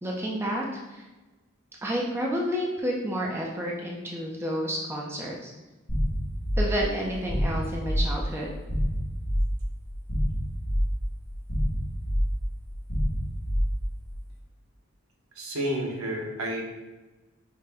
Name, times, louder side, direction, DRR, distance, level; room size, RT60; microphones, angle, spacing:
voice 1, 0.0-1.1 1.8-5.5 6.6-8.5, equal, 10° right, -3 dB, 0.4 m, -30 dB
sound 1, 5.9-14.1, equal, 45° left, 0.9 m, -28 dB
voice 2, 15.4-16.6, equal, 90° right, 0 dB, 0.8 m, -30 dB
5.0 x 2.1 x 3.3 m, 1.1 s
head